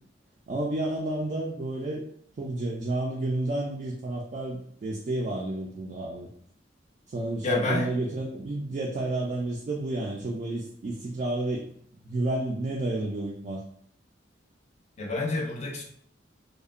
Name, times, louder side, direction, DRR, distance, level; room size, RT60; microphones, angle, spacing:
voice 1, 0.5-2.0 2.4-6.3 7.1-11.6 12.0-13.6, right 2 dB, 40° right, -1 dB, 0.3 m, -30 dB
voice 2, 7.4-7.9 15.0-15.8, left 3 dB, 40° left, 1 dB, 0.5 m, -28 dB
2.7 x 2.1 x 2.4 m, 0.64 s
head